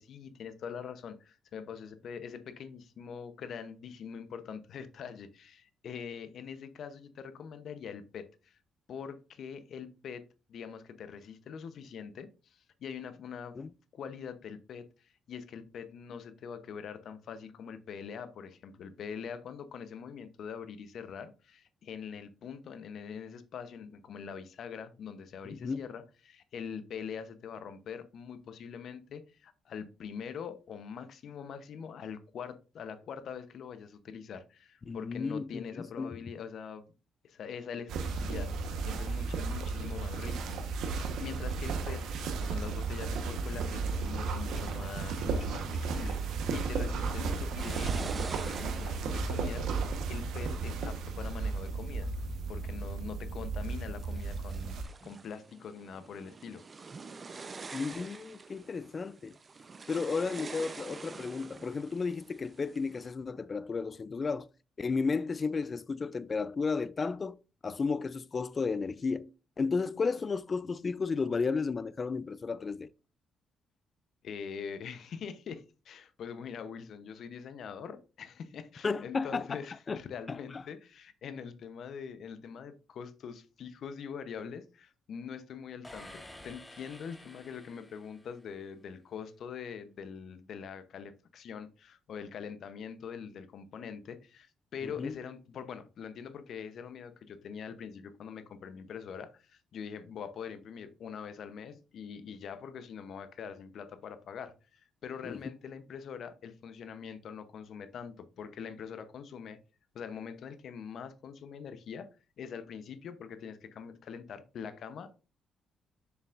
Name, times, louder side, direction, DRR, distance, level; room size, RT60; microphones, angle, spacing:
voice 1, 0.0-8.6 8.9-10.2 10.5-13.6 13.9-36.9 37.2-52.1 52.5-56.6 74.2-109.6 109.9-112.1 112.4-115.1, left 7 dB, 65° left, 0.8 m, -43 dB
voice 2, 25.4-25.8 34.9-36.2 57.7-59.3 59.9-64.5 64.8-67.4 67.6-69.3 69.6-72.9 78.8-79.6 79.9-80.0 80.3-80.6 94.8-95.1 105.2-105.4, left 4 dB, 35° left, 0.4 m, -33 dB
sound 1, 37.9-54.8, right 4 dB, 80° right, 1.1 m, -34 dB
sound 2, 47.6-52.3 52.9-53.5 53.9-63.1, right 4 dB, 35° right, 0.6 m, -47 dB
sound 3, 85.8-88.7, left 1 dB, 10° left, 1.3 m, -51 dB
6.8 x 6.8 x 2.5 m
cardioid pair, 90°, 0 cm